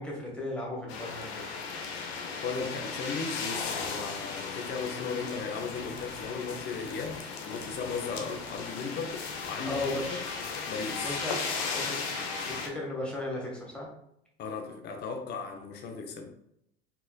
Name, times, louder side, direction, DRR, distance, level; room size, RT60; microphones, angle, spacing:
voice 1, 0.0-1.4 9.6-10.2 11.0-11.4 11.7-12.0 12.4-13.9, left 1 dB, 5° left, -3 dB, 1.5 m, -35 dB
sound 1, 0.9-12.7, left 5 dB, 65° left, 0.8 m, -36 dB
voice 2, 2.3-9.2 9.5-10.2 10.7-11.2 14.4-16.3, left 5 dB, 30° left, 4 dB, 0.7 m, -36 dB
4.5 x 3.2 x 2.2 m, 0.74 s
figure-of-eight pair, 75°, 34 cm